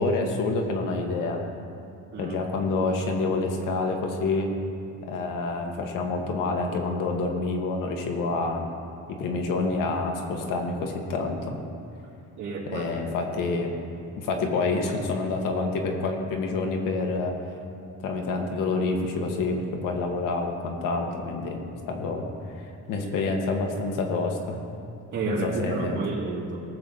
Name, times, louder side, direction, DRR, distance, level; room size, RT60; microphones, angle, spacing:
voice 1, 0.0-1.4 2.2-4.5 5.0-8.7 9.1-11.6 12.7-13.8 14.2-17.5 18.0-21.6 21.9-24.6 25.3-26.0, left 3 dB, 75° left, 2 dB, 1.8 m, -28 dB
voice 2, 12.4-13.2 25.1-26.6, right 3 dB, 60° right, -6 dB, 2.7 m, -31 dB
18.5 x 7.2 x 4.0 m, 2.5 s
supercardioid pair, 85°, 32 cm